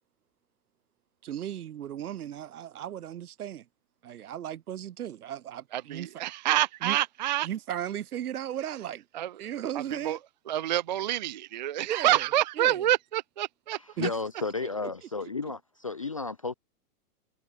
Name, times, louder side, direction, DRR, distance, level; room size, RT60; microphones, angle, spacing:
voice 1, 1.2-3.7 4.0-6.1 6.8-7.0 7.4-9.0 9.4-10.2 11.8-12.3 12.6-12.9 14.0-14.1 14.6-14.7, right 11 dB, 80° right, 3.5 m, -36 dB
voice 2, 5.7-7.5 9.1-9.3 10.0-10.2 10.5-13.8, right 13 dB, 35° right, 0.4 m, -27 dB
voice 3, 14.0-16.5, left 3 dB, 25° left, 0.4 m, -33 dB
supercardioid pair, 175°, 44 cm